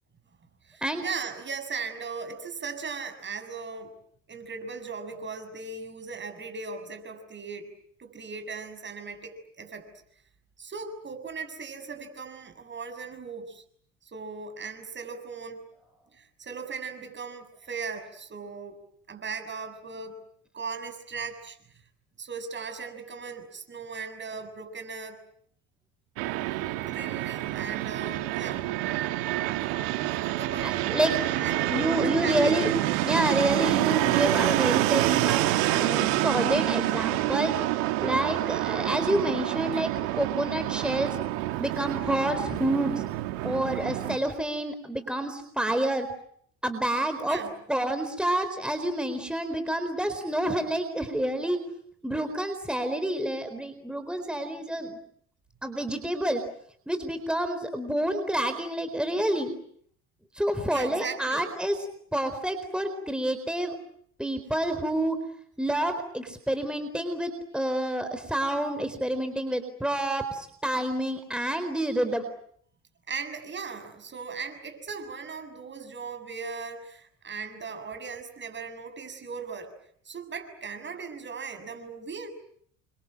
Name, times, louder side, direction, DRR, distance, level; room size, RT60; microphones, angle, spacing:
voice 1, 0.6-3.9 4.3-7.7 8.0-9.8 10.6-13.6 14.0-15.6 16.1-18.8 19.1-20.1 20.5-21.6 22.2-25.2 26.9-28.6 30.2-32.6 47.2-47.5 60.7-61.5 73.1-79.7 80.1-82.3, right 5 dB, 35° right, 8 dB, 7.1 m, -38 dB
Fixed-wing aircraft airplane, 26.2-44.2, right 16 dB, 80° right, 2.2 m, -27 dB
voice 2, 30.6-32.7 33.0-37.6 38.0-41.2 41.6-43.0 43.4-46.1 46.6-47.4 47.7-51.6 52.0-55.0 55.6-56.4 56.9-59.6 60.3-61.8 62.1-63.8 64.2-65.2 65.6-72.2, right 1 dB, 5° right, 8 dB, 4.3 m, -28 dB
29.5 x 25.5 x 7.8 m, 0.66 s
hypercardioid pair, 75°, 33 cm